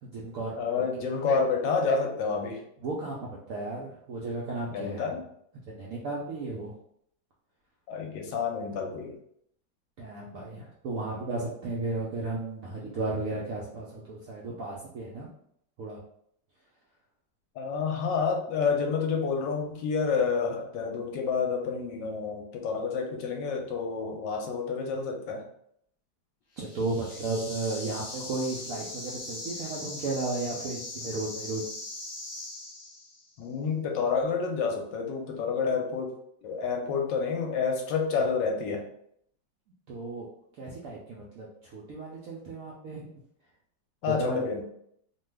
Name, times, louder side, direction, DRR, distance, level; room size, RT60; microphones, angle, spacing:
voice 1, 0.0-0.5 2.8-5.1 5.7-6.7 10.0-15.3 15.8-16.0 26.6-31.6 39.9-40.3 40.6-43.2 44.0-44.4, right 3 dB, 75° right, -4 dB, 0.7 m, -34 dB
voice 2, 0.6-2.6 4.7-5.2 7.9-9.2 17.6-25.4 33.4-36.1 36.4-38.8 44.0-44.6, left 5 dB, 75° left, 2 dB, 1.2 m, -29 dB
sound 1, 26.6-33.3, left 2 dB, 50° left, 1.2 m, -40 dB
3.0 x 2.2 x 3.2 m, 0.69 s
omnidirectional pair, 2.0 m